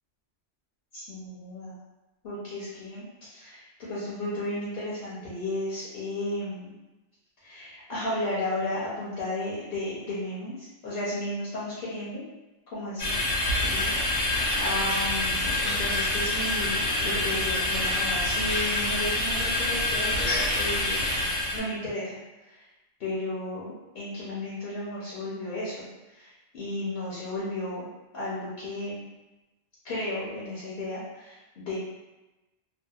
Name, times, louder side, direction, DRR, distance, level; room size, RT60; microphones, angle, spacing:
voice 1, 0.9-1.7 2.2-6.7 7.4-12.2 12.7-13.2 13.6-21.0 21.5-22.2 22.5-22.6 23.0-27.9 28.1-29.1 29.8-31.8, left 1 dB, 55° left, -9 dB, 0.8 m, -34 dB
sound 1, 13.0-21.6, left 1 dB, 85° left, 1.2 m, -26 dB
2.7 x 2.1 x 2.3 m, 1.1 s
omnidirectional pair, 1.2 m